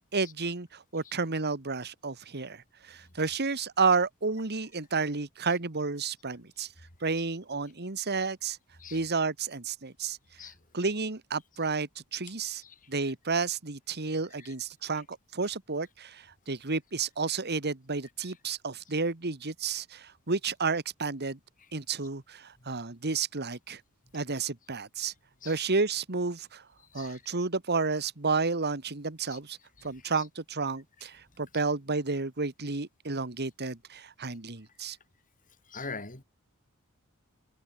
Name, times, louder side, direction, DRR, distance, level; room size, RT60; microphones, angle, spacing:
voice 1, 0.0-6.7 7.0-8.6 8.9-10.2 10.7-12.6 12.9-21.4 21.7-23.8 24.1-25.1 25.4-26.6 26.9-35.0, right 4 dB, 50° right, 1.7 m, -31 dB
voice 2, 26.9-27.2 29.3-29.4 29.8-30.1 35.7-36.2, left 4 dB, 35° left, 6.3 m, -44 dB
head